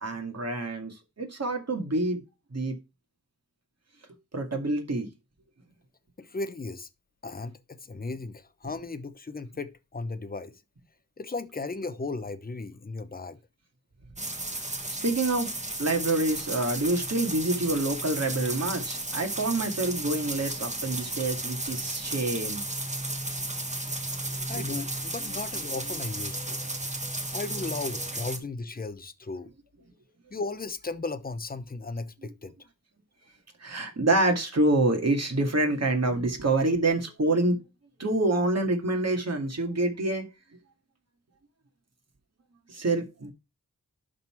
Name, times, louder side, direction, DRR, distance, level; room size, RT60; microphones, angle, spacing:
voice 1, 0.0-2.2 2.5-2.8 4.3-5.1 15.0-15.5 15.8-22.6 24.3-24.6 33.6-37.6 38.0-40.2 42.7-43.3, right 2 dB, 45° right, 2.4 m, -27 dB
voice 2, 6.2-6.9 7.2-10.5 11.2-13.4 24.5-26.6 27.3-29.5 30.3-32.5, left 3 dB, 25° left, 0.9 m, -36 dB
sound 1, 14.2-28.4, right 2 dB, 20° right, 1.6 m, -34 dB
11.5 x 4.0 x 4.5 m
wide cardioid pair, 80°, 36 cm